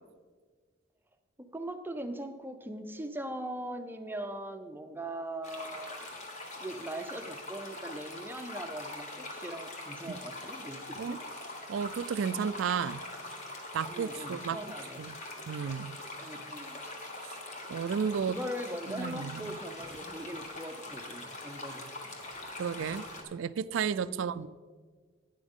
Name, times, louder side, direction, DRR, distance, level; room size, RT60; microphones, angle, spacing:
voice 1, 1.4-6.3 6.6-11.2 13.9-15.1 16.2-16.8 18.3-21.9 24.1-24.5, right 1 dB, 10° right, 7 dB, 0.5 m, -41 dB
sound 1, 5.4-23.2, left 2 dB, 40° left, 1.4 m, -43 dB
voice 2, 11.7-13.0 13.7-14.6 15.0-15.2 15.5-16.0 17.7-18.4 18.9-19.5 22.6-23.0 23.3-24.5, right 6 dB, 85° right, 15 dB, 0.4 m, -32 dB
sound 2, 19.7-23.3, equal, 15° left, 2.3 m, -57 dB
12.0 x 9.5 x 3.6 m, 1.5 s
head